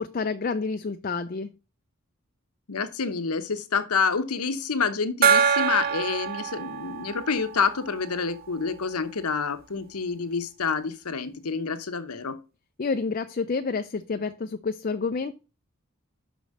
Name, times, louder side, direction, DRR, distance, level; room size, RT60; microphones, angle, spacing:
voice 1, 0.0-1.5 12.8-15.3, left 4 dB, 40° left, 8 dB, 0.4 m, -29 dB
voice 2, 2.7-12.4, left 5 dB, 90° left, 11 dB, 1.0 m, -28 dB
Gong, 5.2-8.5, right 6 dB, 40° right, 0.5 m, -25 dB
6.0 x 5.1 x 6.5 m, 0.32 s
head